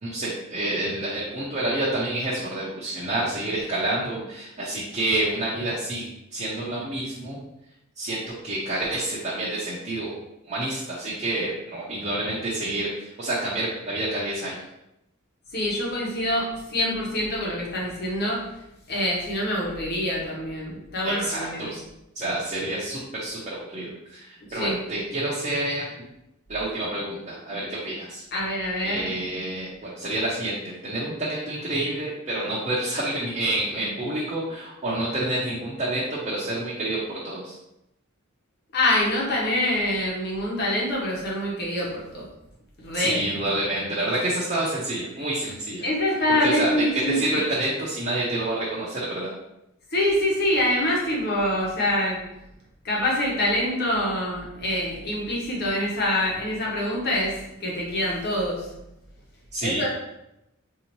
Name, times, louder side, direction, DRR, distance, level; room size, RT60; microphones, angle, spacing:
voice 1, 0.0-6.0 6.3-7.4 8.0-10.2 10.5-14.6 21.0-21.8 22.1-25.9 26.5-28.2 28.8-30.5 30.8-37.5 42.9-45.9 46.4-49.3 59.5-59.9, right 1 dB, 35° right, -7 dB, 0.7 m, -28 dB
voice 2, 15.5-18.5 18.9-21.7 24.5-24.8 28.3-29.1 38.7-42.3 42.8-43.2 45.8-47.2 49.9-52.2 52.8-58.7 59.6-59.9, left 1 dB, 50° left, -3 dB, 1.1 m, -25 dB
4.0 x 2.8 x 3.0 m, 0.86 s
head